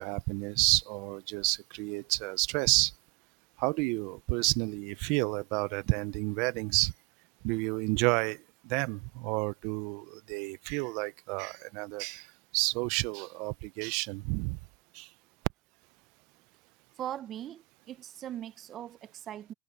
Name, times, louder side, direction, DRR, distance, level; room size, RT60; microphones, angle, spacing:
voice 1, 0.0-2.9 3.6-6.9 7.4-12.3 12.5-14.6 14.9-15.1, right 26 dB, 65° right, 0.6 m, -30 dB
voice 2, 17.0-19.5, right 11 dB, 40° right, 0.9 m, -40 dB
supercardioid pair, 110°, 0 cm